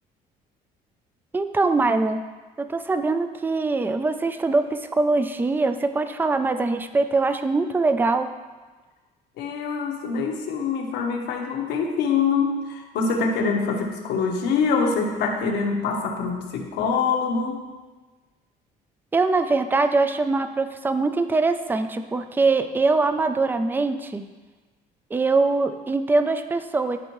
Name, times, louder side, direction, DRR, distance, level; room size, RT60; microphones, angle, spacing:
voice 1, 1.3-2.2 2.6-8.3 19.1-24.2 25.1-27.0, right 3 dB, 10° right, 9 dB, 0.4 m, -22 dB
voice 2, 9.4-17.6, left 5 dB, 85° left, 1 dB, 1.2 m, -24 dB
12.5 x 4.4 x 3.1 m, 1.3 s
cardioid pair, 110°, 17 cm